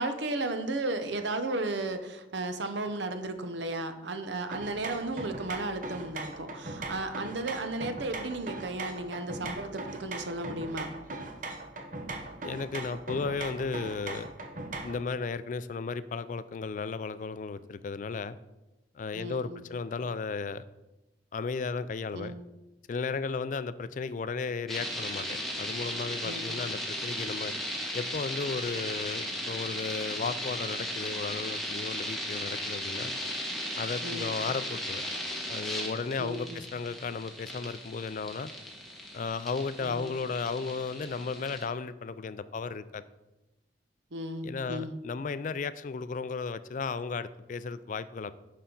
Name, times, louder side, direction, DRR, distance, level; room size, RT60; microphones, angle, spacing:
voice 1, 0.0-10.9 19.1-19.7 22.1-22.4 26.2-26.5 34.0-34.3 36.2-36.6 39.8-40.1 44.1-45.0, right 2 dB, 75° right, 8 dB, 0.8 m, -34 dB
sound 1, 4.5-15.1, right 2 dB, 45° right, 0.9 m, -40 dB
voice 2, 12.4-14.3 14.8-18.4 19.0-20.6 21.3-22.3 22.9-27.5 27.9-33.1 33.8-35.1 35.5-38.5 39.1-43.0 44.4-48.3, left 4 dB, 45° left, 14 dB, 0.3 m, -34 dB
sound 2, 24.7-41.6, equal, ahead, 1.3 m, -36 dB
10.0 x 5.5 x 3.9 m, 1.0 s
head